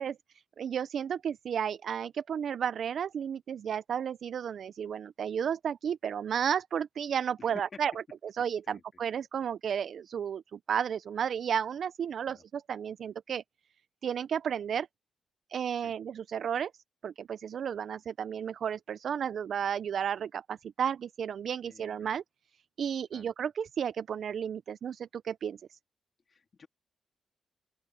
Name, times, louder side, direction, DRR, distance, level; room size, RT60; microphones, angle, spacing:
voice 1, 0.0-7.9 8.4-13.4 14.0-14.9 15.5-16.7 17.0-22.2 22.8-25.8, right 8 dB, 60° right, 0.4 m, -33 dB
voice 2, 7.4-7.8 8.6-8.8 12.3-12.4 15.8-15.9 21.6-22.1 23.1-23.2 26.3-26.7, left 5 dB, 40° left, 2.2 m, -51 dB
open air
cardioid pair, 125°, 0 cm